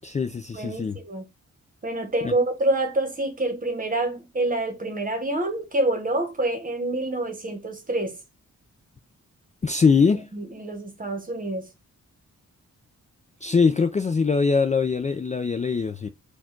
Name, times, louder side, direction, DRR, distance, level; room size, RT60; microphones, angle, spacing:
voice 1, 0.0-1.0 2.2-2.3 9.6-10.2 13.4-16.1, left 5 dB, 25° left, 0.4 m, -22 dB
voice 2, 0.5-1.2 1.8-8.2 10.3-11.7, right 2 dB, 25° right, 1.1 m, -27 dB
4.5 x 2.4 x 4.4 m
wide cardioid pair, 155°, 31 cm